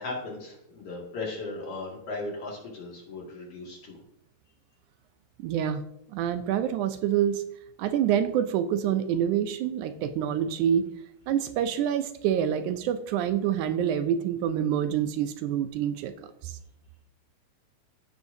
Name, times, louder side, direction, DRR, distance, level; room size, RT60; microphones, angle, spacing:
voice 1, 0.0-4.0, left 3 dB, 50° left, -2 dB, 2.8 m, -37 dB
voice 2, 5.4-5.8 6.1-7.4 7.8-10.9 11.3-16.1 16.4-16.6, right 9 dB, 80° right, 9 dB, 1.9 m, -26 dB
15.0 x 7.2 x 2.6 m, 0.79 s
omnidirectional pair, 3.6 m